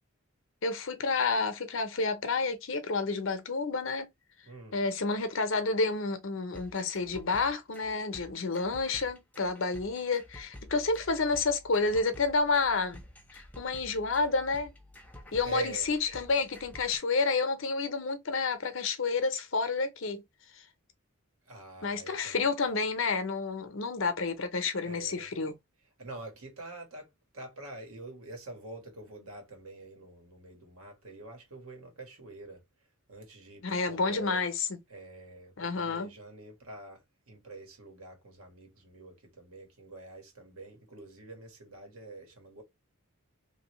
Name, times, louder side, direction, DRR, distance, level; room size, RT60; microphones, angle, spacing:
voice 1, 0.6-4.1 4.7-13.0 13.3-14.7 15.3-20.2 21.8-25.5 33.6-34.8 35.6-36.1, left 4 dB, 60° left, 0.7 m, -30 dB
voice 2, 4.4-4.8 15.4-15.9 21.5-22.5 24.8-25.3 26.0-32.6 33.1-34.4 34.9-42.6, right 3 dB, 80° right, 1.5 m, -45 dB
sound 1, 6.5-17.0, left 1 dB, 5° left, 0.6 m, -50 dB
3.0 x 2.7 x 3.0 m
head